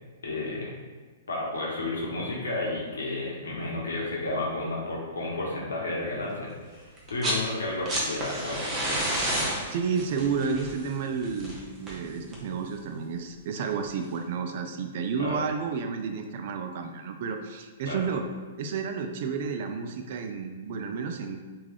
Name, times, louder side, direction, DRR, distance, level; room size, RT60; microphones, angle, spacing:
voice 1, 0.2-0.7 1.3-8.6 15.2-15.4 17.9-18.1, left 2 dB, 90° left, -4 dB, 0.8 m, -32 dB
sound 1, 7.0-7.5 7.7-12.6 13.8-13.9, right 1 dB, 25° right, 0.7 m, -30 dB
voice 2, 9.7-18.3 18.6-21.4, right 5 dB, 55° right, 5 dB, 0.3 m, -31 dB
3.3 x 2.3 x 2.4 m, 1.4 s
hypercardioid pair, 125°, 0 cm